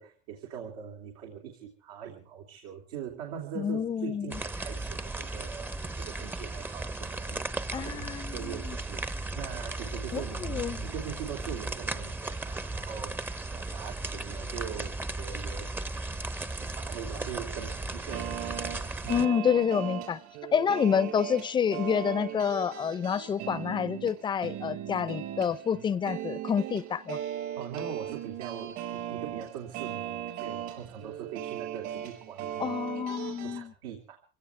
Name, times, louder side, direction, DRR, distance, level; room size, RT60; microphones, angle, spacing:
voice 1, 0.0-16.2 16.5-19.3 27.6-32.7 33.4-34.2, right 8 dB, 85° right, 3.0 m, -42 dB
voice 2, 3.6-4.3 7.7-8.8 10.1-10.8 19.1-20.2 20.5-27.2 32.6-33.7, left 7 dB, 25° left, 0.7 m, -28 dB
sound 1, 4.3-19.2, right 2 dB, 10° right, 0.8 m, -36 dB
sound 2, 18.1-33.6, right 11 dB, 60° right, 5.4 m, -38 dB
25.0 x 17.0 x 3.4 m
supercardioid pair, 115°, 18 cm